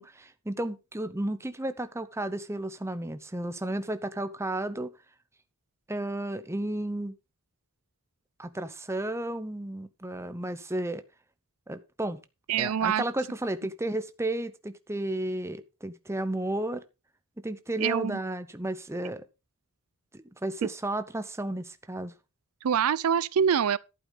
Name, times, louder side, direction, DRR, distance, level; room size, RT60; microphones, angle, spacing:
voice 1, 0.0-4.9 5.9-7.2 8.4-11.0 11.7-12.2 12.6-16.8 17.4-19.2 20.1-22.1, right 1 dB, 10° right, 0.8 m, -33 dB
voice 2, 12.5-13.0 17.8-18.2 20.6-20.7 22.6-23.8, right 7 dB, 75° right, 0.4 m, -25 dB
11.5 x 8.8 x 3.9 m
head